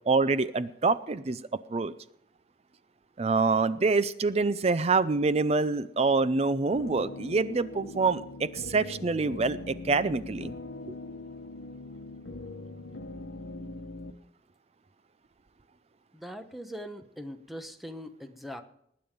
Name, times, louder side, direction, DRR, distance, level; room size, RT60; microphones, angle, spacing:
voice 1, 0.1-1.4 1.7-1.9 3.2-10.5, right 4 dB, 35° right, 15 dB, 0.5 m, -26 dB
sound 1, 6.7-14.1, left 2 dB, 80° left, 1.1 m, -41 dB
voice 2, 16.1-18.6, equal, ahead, 7 dB, 1.1 m, -41 dB
19.5 x 9.6 x 5.1 m, 0.72 s
head